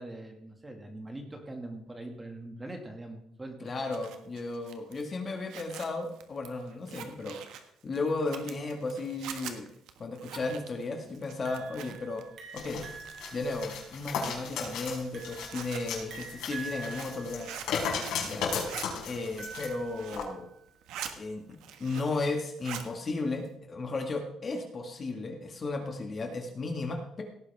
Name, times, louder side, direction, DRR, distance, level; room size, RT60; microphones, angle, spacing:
voice 1, 0.0-3.7, right 1 dB, 15° right, 3 dB, 2.3 m, -42 dB
voice 2, 3.6-7.4 7.8-9.7 10.0-12.2 12.5-12.8 13.3-17.5 18.2-18.5 19.1-20.5 21.2-21.4 21.8-27.2, left 3 dB, 30° left, 3 dB, 2.0 m, -34 dB
Zipper (clothing), 3.7-12.2 12.5-13.5 13.9-18.2 18.5-18.9 19.3-20.3 20.7-21.1 21.5-22.2 22.5-22.9, right 9 dB, 85° right, 1.5 m, -44 dB
sound 1, 11.4-20.7, right 6 dB, 55° right, 3.4 m, -47 dB
sound 2, 12.6-19.7 20.1-20.2, left 6 dB, 85° left, 4.7 m, -36 dB
17.5 x 9.9 x 3.6 m, 0.74 s
cardioid pair, 150°, 0 cm